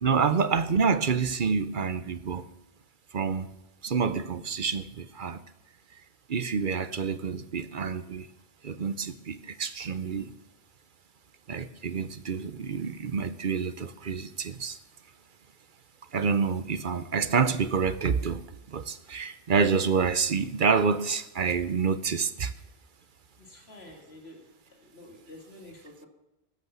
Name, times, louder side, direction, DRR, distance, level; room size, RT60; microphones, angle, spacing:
voice 1, 0.0-2.5 3.1-3.5 3.8-5.4 6.3-8.3 8.6-10.3 11.5-14.8 16.1-18.4 18.7-22.5, right 5 dB, 55° right, 0.9 m, -27 dB
voice 2, 23.4-24.4 24.7-26.1, left 1 dB, 75° left, 2.6 m, -49 dB
16.0 x 12.5 x 6.9 m
omnidirectional pair, 1.1 m